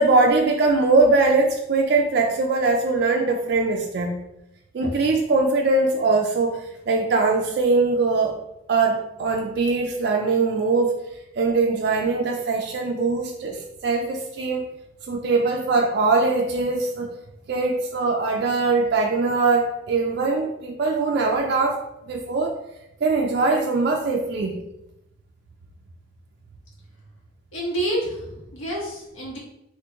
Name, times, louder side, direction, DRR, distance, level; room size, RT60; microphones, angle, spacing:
voice 1, 0.0-4.2 4.7-8.4 8.7-11.0 11.4-14.7 15.1-17.1 17.5-21.8 22.1-22.6 23.0-24.6, right 3 dB, 55° right, 1 dB, 0.3 m, -21 dB
voice 2, 27.5-29.4, right 1 dB, 85° left, -4 dB, 1.2 m, -28 dB
2.9 x 2.5 x 3.4 m, 0.85 s
head